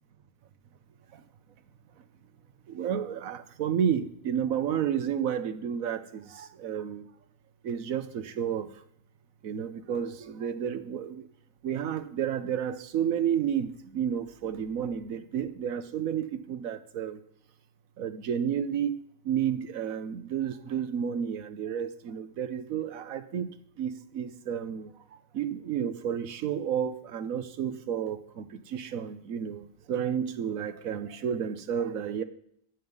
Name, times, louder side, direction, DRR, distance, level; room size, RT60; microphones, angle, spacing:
voice 1, 2.7-7.0 7.6-8.7 9.4-11.3 11.6-17.2 18.0-18.9 19.2-23.5 23.8-24.9 25.3-32.2, right 8 dB, 85° right, 11 dB, 1.3 m, -31 dB
14.5 x 5.5 x 9.6 m, 0.72 s
omnidirectional pair, 1.4 m